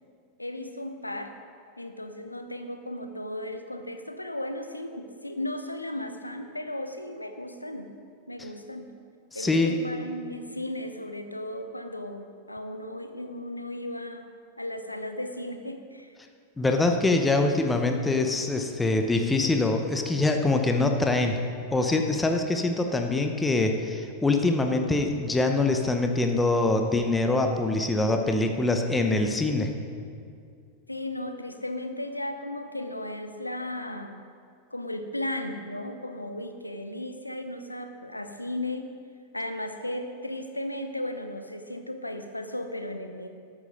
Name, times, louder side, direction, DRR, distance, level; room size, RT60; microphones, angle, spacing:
voice 1, 0.4-1.3 1.8-7.9 8.3-8.9 9.3-14.3 14.6-16.1 30.9-34.2 34.7-38.9 39.3-43.3, left 1 dB, 85° left, 7 dB, 0.9 m, -35 dB
voice 2, 9.3-9.7 16.6-21.4 21.7-29.7, left 2 dB, 10° left, 4 dB, 0.9 m, -24 dB
13.0 x 8.7 x 5.2 m, 2.3 s
figure-of-eight pair, 90°, 0 cm